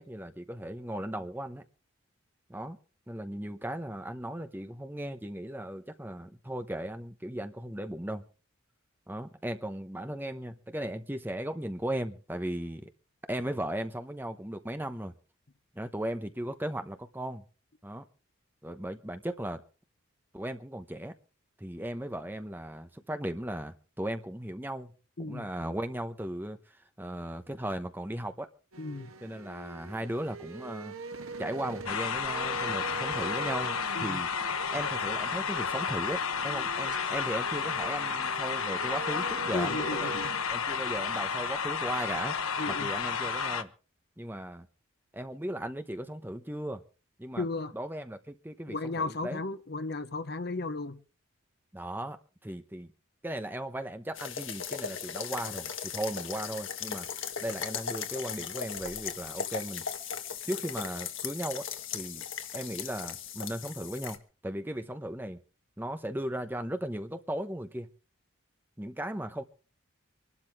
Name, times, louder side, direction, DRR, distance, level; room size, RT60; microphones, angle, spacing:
voice 1, 0.0-1.6 2.5-2.8 3.1-8.2 9.1-12.9 13.3-15.1 15.7-17.4 17.8-18.0 18.6-19.6 20.3-21.1 21.6-24.9 25.2-26.6 27.0-28.5 29.2-30.9 31.4-34.3 34.7-40.2 40.5-42.3 42.7-43.7 44.2-44.7 45.1-46.8 47.2-47.5 47.7-49.4 51.7-52.2 52.4-52.9 53.2-57.1 57.4-59.8 60.5-61.7 61.9-62.2 62.5-65.4 65.8-67.9 68.8-69.4, right 1 dB, 10° right, 0.9 m, -37 dB
sound 1, 28.7-40.4, right 4 dB, 85° right, 1.4 m, -43 dB
voice 2, 28.8-29.1 33.9-34.2 39.5-40.3 42.6-42.9 47.4-47.7 48.7-51.0, left 3 dB, 50° left, 0.9 m, -34 dB
sound 2, 31.9-43.6, left 5 dB, 85° left, 1.1 m, -32 dB
sound 3, 54.2-64.2, left 7 dB, 65° left, 1.6 m, -38 dB
25.0 x 12.0 x 3.6 m
head